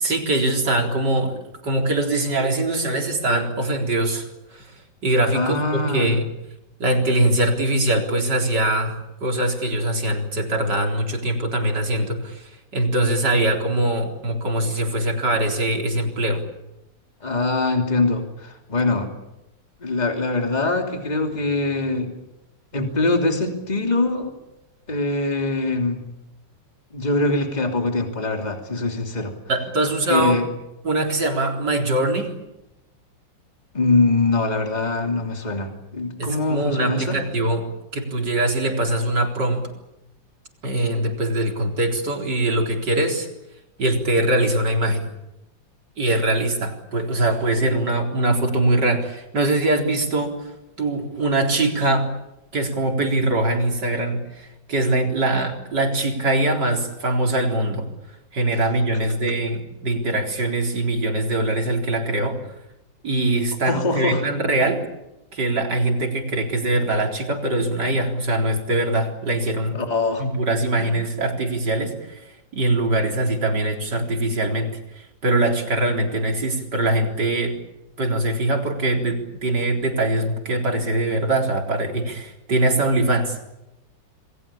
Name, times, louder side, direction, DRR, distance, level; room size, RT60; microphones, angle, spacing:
voice 1, 0.0-4.7 5.0-6.3 6.8-16.4 29.5-30.4 30.8-32.4 36.2-37.7 37.9-39.6 40.6-43.3 43.8-45.0 46.0-50.5 50.8-52.1 52.5-57.9 58.3-62.4 63.0-64.8 65.3-69.8 70.2-72.2 72.5-74.7 75.0-77.5 78.0-83.4, right 1 dB, 65° right, 2 dB, 4.6 m, -22 dB
voice 2, 5.3-6.2 17.2-19.1 19.8-22.1 22.7-24.3 24.9-26.0 26.9-29.3 30.1-30.5 33.7-37.2 63.6-64.2 69.7-70.2 70.8-70.9, left 2 dB, 20° left, 3 dB, 3.1 m, -23 dB
28.5 x 21.0 x 8.7 m, 0.93 s
omnidirectional pair, 2.0 m